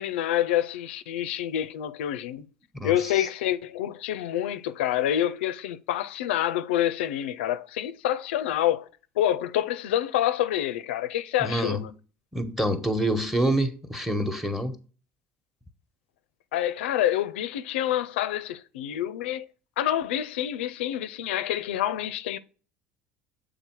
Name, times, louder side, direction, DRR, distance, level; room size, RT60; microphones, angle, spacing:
voice 1, 0.0-2.5 2.8-8.9 9.2-11.9 16.5-19.5 19.8-22.4, left 12 dB, 85° left, 0.4 m, -27 dB
voice 2, 2.7-3.3 11.4-11.9 12.3-14.8, right 1 dB, 5° right, 1.1 m, -27 dB
6.7 x 3.7 x 4.6 m
hypercardioid pair, 75°, 6 cm